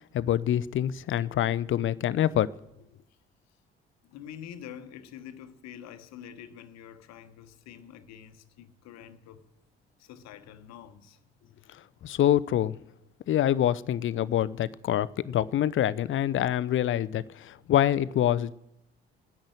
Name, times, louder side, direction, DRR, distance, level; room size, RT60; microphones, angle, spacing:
voice 1, 0.1-2.5 12.0-12.8 13.3-18.5, left 11 dB, 40° left, 0.6 m, -26 dB
voice 2, 4.0-9.5 10.0-11.2, left 9 dB, 60° left, 1.1 m, -46 dB
13.5 x 10.5 x 7.8 m
figure-of-eight pair, 45°, 30 cm